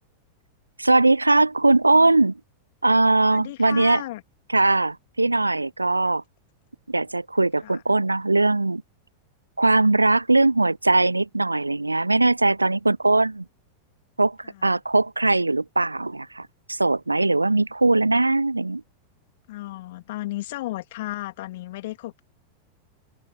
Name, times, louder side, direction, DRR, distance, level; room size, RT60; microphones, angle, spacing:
voice 1, 0.8-2.4 2.8-4.0 4.5-6.2 6.9-8.8 9.6-13.4 14.2-18.8, right 2 dB, 85° right, 0.7 m, -20 dB
voice 2, 3.3-4.2 7.6-7.8 9.7-9.9 14.4-14.8 19.5-22.2, left 17 dB, 55° left, 2.8 m, -34 dB
open air
figure-of-eight pair, 90°, 0 cm